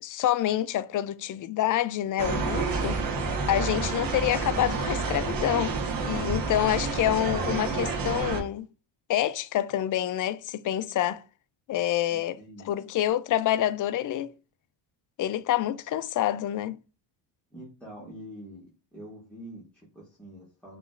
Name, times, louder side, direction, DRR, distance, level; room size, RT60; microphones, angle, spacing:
voice 1, 0.0-3.0 3.5-5.8 6.0-8.7 9.1-11.2 11.7-12.4 12.7-14.3 15.2-16.8, left 12 dB, 45° left, 0.4 m, -27 dB
sound 1, 2.2-8.4, right 4 dB, 45° right, 1.2 m, -29 dB
voice 2, 12.1-12.7 17.5-20.8, equal, ahead, 2.1 m, -45 dB
5.9 x 3.2 x 2.5 m
cardioid pair, 95°, 47 cm